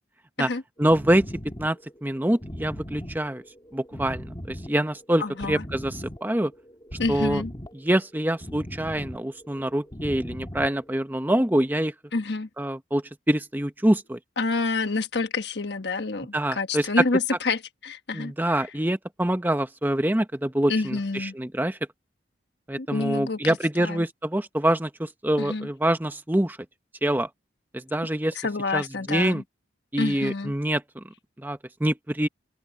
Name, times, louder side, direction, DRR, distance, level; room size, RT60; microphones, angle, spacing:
sound 1, 0.8-11.0, equal, 20° left, 2.3 m, -39 dB
voice 1, 0.8-1.2 1.6-3.4 3.7-6.5 7.1-7.4 7.8-11.9 12.6-14.2 16.3-16.9 18.1-21.8 22.7-26.6 27.0-27.3 27.7-28.3 28.7-29.4 29.9-31.0 31.4-32.3, right 1 dB, 10° right, 0.8 m, -25 dB
voice 2, 5.2-5.6 7.0-7.5 12.1-12.5 14.4-18.7 20.7-21.3 22.8-24.0 25.4-25.7 28.3-29.4 30.0-30.5, left 3 dB, 65° left, 1.3 m, -28 dB
open air
head